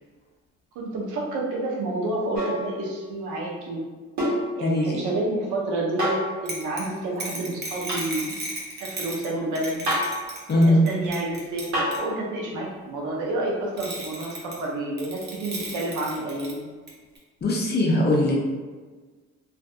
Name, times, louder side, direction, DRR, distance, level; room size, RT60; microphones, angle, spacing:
voice 1, 0.7-3.8 4.6-8.3 8.8-9.8 10.5-16.6, right 2 dB, 85° right, -2 dB, 0.7 m, -29 dB
sound 1, 2.3-2.7 4.2-4.5 6.0-6.3 7.9-8.1 9.9-10.2 11.7-12.0 13.8-13.9, equal, 70° right, 1.1 m, -26 dB
voice 2, 4.6-5.0 10.5-10.8 17.4-18.4, left 1 dB, 35° left, -2 dB, 0.6 m, -20 dB
sound 2, 6.4-9.3 9.5-12.0 13.8-14.6 15.0-16.5 16.9-17.0 17.1-17.2, right 2 dB, 35° right, 0.8 m, -35 dB
2.5 x 2.5 x 2.3 m, 1.4 s
cardioid pair, 90°, 30 cm